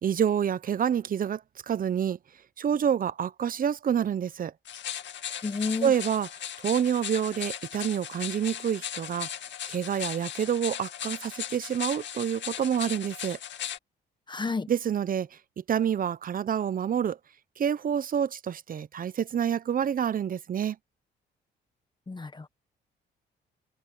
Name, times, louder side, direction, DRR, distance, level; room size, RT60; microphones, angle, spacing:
voice 1, 0.0-2.2 2.6-4.5 5.8-6.3 6.6-9.3 9.7-13.4 14.7-17.2 17.6-20.8, right 8 dB, 45° right, 0.8 m, -28 dB
sound 1, 4.7-13.8, left 10 dB, 65° left, 2.2 m, -37 dB
voice 2, 5.3-5.9 14.3-14.7 22.1-22.5, left 4 dB, 25° left, 1.4 m, -31 dB
cardioid pair, 90°, 20 cm